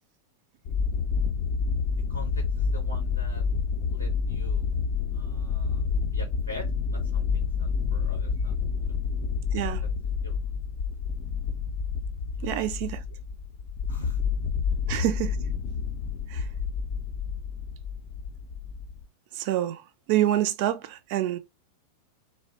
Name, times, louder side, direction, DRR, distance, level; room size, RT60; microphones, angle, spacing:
sound 1, 0.7-19.1, left 5 dB, 45° left, 0.4 m, -29 dB
voice 1, 2.1-3.4 3.9-4.7 5.1-8.5 8.8-9.0 9.7-9.8 10.2-10.4 12.3-12.6 13.1-13.2 13.9-14.2, left 1 dB, 85° left, 0.6 m, -44 dB
voice 2, 12.4-13.0 14.9-15.4 16.3-16.4 19.4-19.8 20.1-21.4, right 13 dB, 45° right, 0.3 m, -26 dB
2.6 x 2.0 x 2.9 m
figure-of-eight pair, 90°, 0 cm